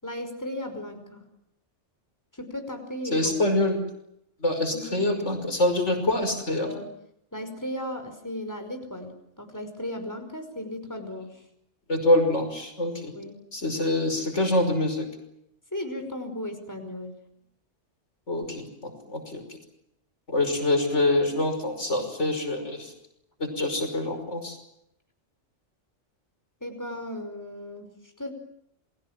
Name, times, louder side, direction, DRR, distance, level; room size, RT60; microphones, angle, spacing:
voice 1, 0.0-1.2 2.3-3.6 4.7-5.3 6.5-6.9 7.3-11.4 13.1-13.4 15.7-17.2 26.6-28.3, left 1 dB, 15° left, 6 dB, 5.3 m, -36 dB
voice 2, 3.1-3.8 4.4-6.7 11.9-13.1 13.5-15.1 18.3-19.4 20.3-22.9 23.4-24.6, left 1 dB, 70° left, 6 dB, 5.9 m, -25 dB
30.0 x 22.5 x 7.5 m, 0.78 s
omnidirectional pair, 1.3 m